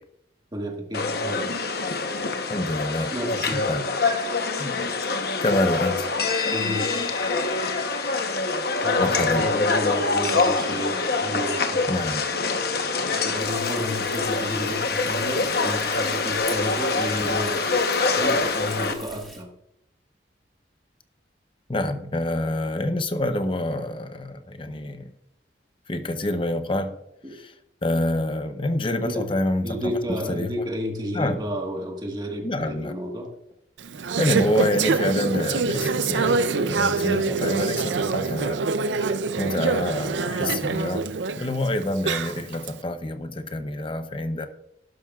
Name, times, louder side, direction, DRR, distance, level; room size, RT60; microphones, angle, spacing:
voice 1, 0.5-1.5 3.1-3.7 6.5-6.9 8.8-10.9 11.2-11.8 13.0-17.7 18.2-19.5 27.2-27.4 28.9-29.2 29.6-33.3 40.2-40.5, equal, 25° right, 1 dB, 1.5 m, -31 dB
sound 1, 0.9-18.9, left 3 dB, 55° left, 1.0 m, -25 dB
voice 2, 2.5-3.1 3.5-3.9 4.6-4.8 5.4-6.1 9.0-9.5 11.9-12.2 21.7-25.1 25.9-26.9 27.3-27.5 27.8-30.5 31.1-31.4 32.4-32.9 34.2-38.6 39.4-41.1 41.4-44.5, left 1 dB, 30° left, 9 dB, 0.7 m, -27 dB
Frying (food), 13.4-19.4, equal, ahead, 1.7 m, -43 dB
Conversation / Chatter, 33.8-42.7, right 4 dB, 85° right, 0.5 m, -25 dB
11.5 x 11.5 x 2.4 m, 0.79 s
head